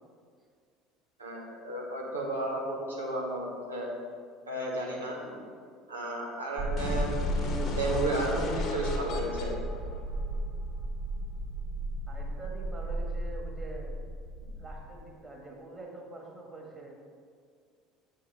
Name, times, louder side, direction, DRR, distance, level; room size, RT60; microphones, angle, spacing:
voice 1, 1.2-3.9 4.5-5.4 5.9-9.5, right 2 dB, 85° right, -4 dB, 1.4 m, -33 dB
sound 1, 6.6-15.1, right 1 dB, 40° right, 1.0 m, -35 dB
sound 2, 6.8-10.7, left 3 dB, 40° left, 1.2 m, -36 dB
voice 2, 12.1-13.9 14.6-17.0, right 2 dB, 20° right, -1 dB, 1.8 m, -45 dB
8.1 x 5.6 x 4.3 m, 2.1 s
figure-of-eight pair, 65°, 0 cm